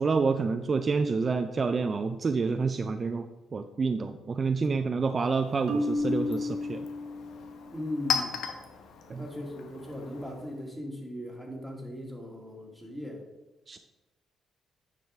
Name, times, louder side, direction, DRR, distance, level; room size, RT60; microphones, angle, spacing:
voice 1, 0.0-6.9 9.1-9.3 13.7-13.8, right 4 dB, 35° right, 8 dB, 0.4 m, -28 dB
Chink clink, 5.2-10.7, left 6 dB, 75° left, 0.9 m, -38 dB
Marimba xylophone, 5.7-7.7, left 1 dB, 65° right, 0.8 m, -31 dB
voice 2, 7.7-8.4 9.2-13.2, left 1 dB, ahead, 0 dB, 1.8 m, -38 dB
9.2 x 5.0 x 3.5 m, 1.1 s
cardioid pair, 90°, 0 cm